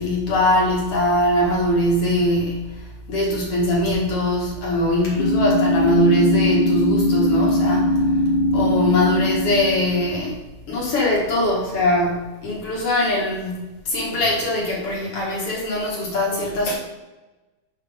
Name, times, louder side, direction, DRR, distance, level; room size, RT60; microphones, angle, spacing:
voice 1, 0.0-8.2 8.5-10.4 10.7-16.7, left 1 dB, 55° left, -4 dB, 2.6 m, -21 dB
sound 1, 5.2-10.2, left 1 dB, 70° left, 1.3 m, -21 dB
6.6 x 5.8 x 3.6 m, 1.1 s
omnidirectional pair, 3.3 m